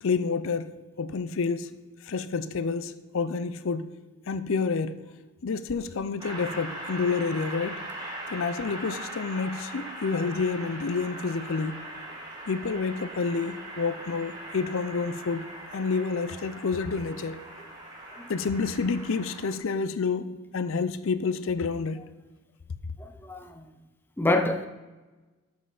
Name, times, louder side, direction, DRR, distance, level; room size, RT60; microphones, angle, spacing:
voice 1, 0.0-1.7 2.0-3.9 4.3-5.0 5.4-7.8 8.3-11.8 12.5-17.4 18.3-22.0, left 4 dB, 60° left, 12 dB, 0.5 m, -29 dB
Train, 6.2-19.6, right 1 dB, 20° right, 1.6 m, -40 dB
voice 2, 23.0-23.6 24.2-24.7, left 2 dB, 10° left, 6 dB, 0.5 m, -27 dB
12.5 x 5.6 x 4.0 m, 1.2 s
head